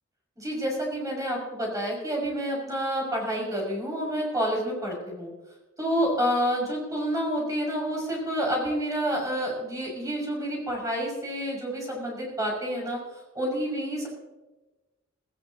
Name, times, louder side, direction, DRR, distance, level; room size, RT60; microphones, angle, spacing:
voice 1, 0.4-5.3 5.8-13.0 13.3-14.1, equal, 15° right, -2 dB, 6.1 m, -29 dB
18.5 x 18.0 x 2.9 m, 1.1 s
head